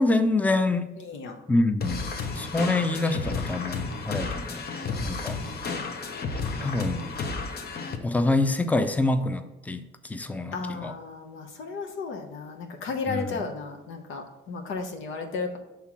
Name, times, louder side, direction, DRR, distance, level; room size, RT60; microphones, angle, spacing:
voice 1, 0.0-0.9 1.5-2.1 2.4-4.6 5.0-5.4 6.6-7.1 8.0-10.9 13.1-13.4, left 2 dB, 10° left, 8 dB, 0.5 m, -26 dB
voice 2, 1.0-1.4 5.7-5.9 10.5-15.6, left 4 dB, 80° left, 3 dB, 0.9 m, -34 dB
sound 1, 1.8-8.0, left 4 dB, 55° left, 0.8 m, -32 dB
5.7 x 3.7 x 6.0 m, 1.0 s
cardioid pair, 90°, 20 cm